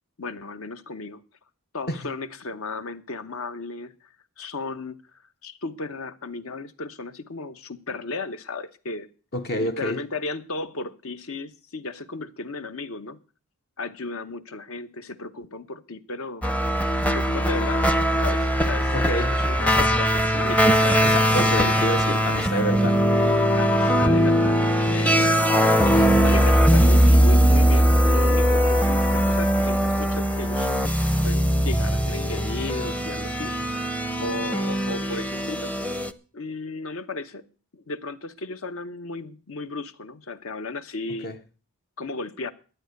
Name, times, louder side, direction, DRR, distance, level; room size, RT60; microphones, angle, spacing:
voice 1, 0.2-1.2 1.7-3.9 4.4-5.0 5.4-9.1 9.6-13.2 13.8-16.5 17.0-17.9 18.2-21.8 23.5-24.6 24.9-33.5 34.2-35.7 36.3-37.4 37.7-41.3 42.0-42.5, left 3 dB, 65° left, 1.0 m, -35 dB
voice 2, 9.3-10.0 18.9-19.4 21.0-23.0 41.2-41.4, equal, 45° left, 0.8 m, -28 dB
sound 1, 16.4-36.1, equal, 5° left, 0.6 m, -20 dB
12.0 x 9.3 x 6.5 m
head